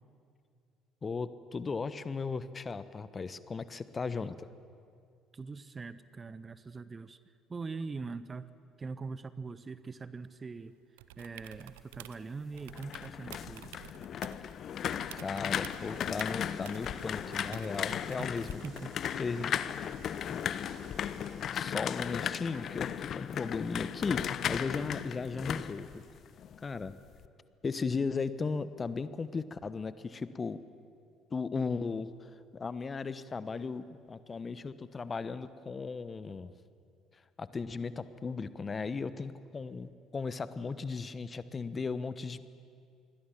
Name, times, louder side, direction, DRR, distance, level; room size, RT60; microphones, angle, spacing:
voice 1, 1.0-4.5 15.1-18.5 19.2-19.5 20.3-20.4 21.5-26.0 26.6-27.0 27.6-30.6 31.3-36.5 37.1-42.4, left 4 dB, 30° left, 14 dB, 1.1 m, -36 dB
voice 2, 5.3-7.2 7.5-8.5 8.8-10.8 11.2-13.8 18.2-18.4 18.6-18.9, right 4 dB, 30° right, 15 dB, 1.0 m, -42 dB
sound 1, 11.0-12.2 12.6-14.6 14.9-19.0 20.8-20.9, right 15 dB, 70° right, 0.7 m, -51 dB
sound 2, 12.6-26.6 26.9-27.3, left 9 dB, 50° left, 0.8 m, -36 dB
sound 3, 15.7-21.8, right 8 dB, 50° right, 1.7 m, -57 dB
27.5 x 22.0 x 7.3 m, 2.3 s
figure-of-eight pair, 55°, 0 cm